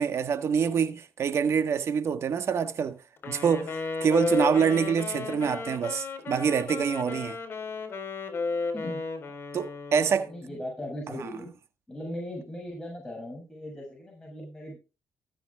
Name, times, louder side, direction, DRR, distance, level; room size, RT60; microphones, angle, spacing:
voice 1, 0.0-3.0 3.3-7.4 9.5-10.3 11.2-11.3, right 6 dB, 55° right, 1.6 m, -26 dB
Wind instrument woodwind instrument, 3.2-10.4, left 4 dB, 45° left, 4.1 m, -33 dB
voice 2, 8.7-9.0 10.3-11.5 11.9-14.8, equal, 10° left, 7.2 m, -38 dB
20.0 x 7.6 x 3.6 m
cardioid pair, 100°, 5 cm